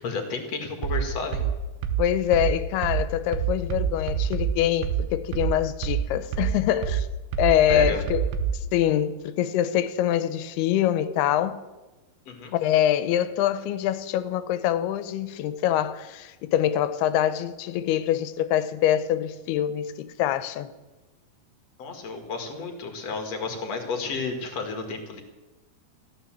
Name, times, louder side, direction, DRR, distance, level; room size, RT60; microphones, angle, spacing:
voice 1, 0.0-1.5 7.7-8.0 12.3-12.6 21.8-25.2, left 4 dB, 50° left, 2.7 m, -32 dB
sound 1, 0.8-8.7, right 7 dB, 80° right, 2.9 m, -27 dB
voice 2, 2.0-7.1 7.4-8.2 8.7-11.6 12.5-20.7, left 11 dB, 90° left, 2.8 m, -24 dB
15.0 x 12.5 x 7.6 m
omnidirectional pair, 4.5 m